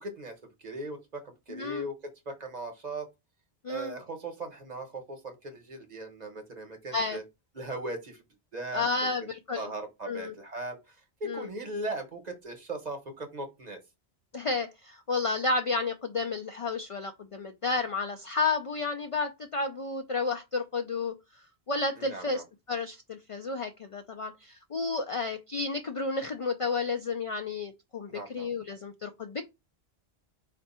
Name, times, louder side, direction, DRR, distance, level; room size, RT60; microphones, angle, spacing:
voice 1, 0.0-3.1 3.7-7.2 7.5-8.2 8.5-9.3 9.5-13.8 22.0-22.4 28.1-28.5, right 2 dB, 40° right, 5 dB, 1.0 m, -39 dB
voice 2, 1.5-1.9 3.6-3.9 6.9-7.2 8.7-9.7 10.1-10.3 11.2-11.5 14.3-21.1 21.7-22.4 22.7-29.4, left 3 dB, 55° left, 5 dB, 0.3 m, -31 dB
4.4 x 2.5 x 4.1 m, 0.23 s
omnidirectional pair, 1.1 m